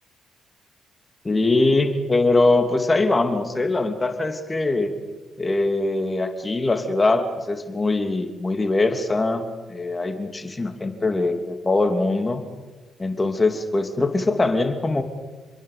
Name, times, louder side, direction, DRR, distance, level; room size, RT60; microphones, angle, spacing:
voice 1, 1.2-4.9 5.4-12.4 13.0-15.0, left 2 dB, 25° left, 7 dB, 3.0 m, -22 dB
28.5 x 22.5 x 7.0 m, 1.2 s
hypercardioid pair, 45°, 0 cm